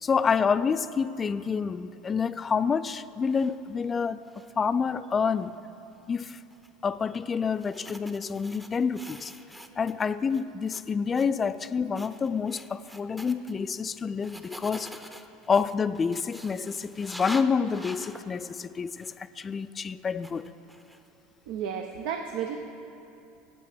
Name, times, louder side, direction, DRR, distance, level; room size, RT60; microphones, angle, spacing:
voice 1, 0.0-4.2 4.6-5.5 6.1-6.4 6.8-9.3 9.8-14.9 15.5-20.5, left 6 dB, 25° left, 14 dB, 0.3 m, -28 dB
sound 1, 3.3-3.6 4.0-4.7 5.3-5.5 6.5-6.7 7.5-10.1 10.3-10.8 11.1-11.3 11.5-11.7 12.0-13.5 14.2-18.3 19.0-19.2 20.2-21.1, equal, 5° right, 0.6 m, -45 dB
voice 2, 21.5-22.6, right 7 dB, 70° right, 5 dB, 0.6 m, -32 dB
8.4 x 7.3 x 7.6 m, 2.8 s
hypercardioid pair, 90°, 0 cm